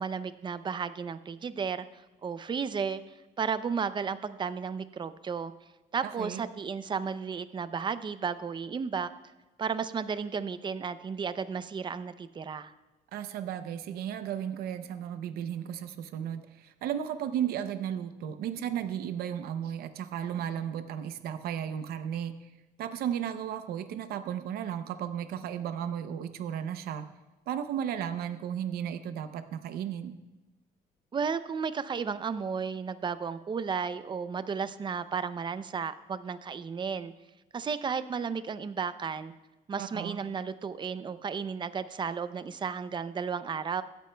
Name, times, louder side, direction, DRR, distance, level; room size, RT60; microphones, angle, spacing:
voice 1, 0.0-3.0 3.4-5.5 5.9-9.1 9.6-12.7 31.1-37.1 37.5-39.3 39.7-43.8, right 6 dB, 30° right, 13 dB, 0.5 m, -33 dB
voice 2, 6.0-6.4 13.1-22.5 22.8-27.1 27.5-30.2 39.8-40.2, right 9 dB, 75° right, 10 dB, 0.7 m, -34 dB
24.0 x 8.2 x 2.3 m, 1.1 s
cardioid pair, 110°, 16 cm